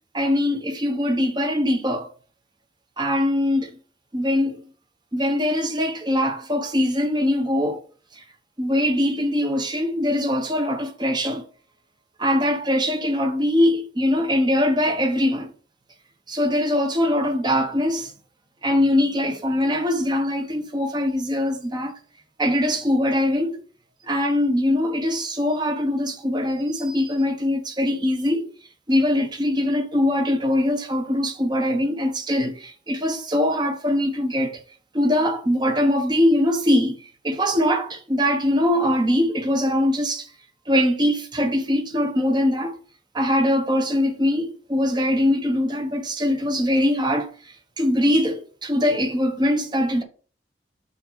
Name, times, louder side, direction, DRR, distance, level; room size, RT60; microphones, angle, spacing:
voice 1, 0.1-2.1 3.0-3.8 4.1-4.6 5.1-7.8 8.2-8.3 8.6-11.4 12.2-15.5 16.3-18.1 18.6-21.9 22.4-23.6 24.0-28.5 28.9-34.6 34.9-40.3 40.7-42.7 43.1-50.0, left 1 dB, 25° right, 1.0 m, -22 dB
5.6 x 3.9 x 5.6 m
head